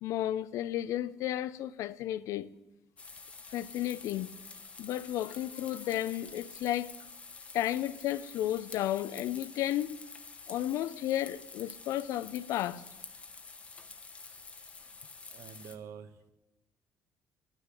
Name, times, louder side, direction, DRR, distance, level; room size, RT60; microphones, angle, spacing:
voice 1, 0.0-2.5 3.5-4.3 4.8-6.9 7.5-10.1 10.5-12.8, left 12 dB, 70° left, 0.5 m, -33 dB
sound 1, 3.0-15.8, left 4 dB, 20° left, 0.9 m, -48 dB
voice 2, 15.3-16.3, right 7 dB, 60° right, 1.1 m, -47 dB
11.5 x 9.9 x 8.3 m
cardioid pair, 165°, 6 cm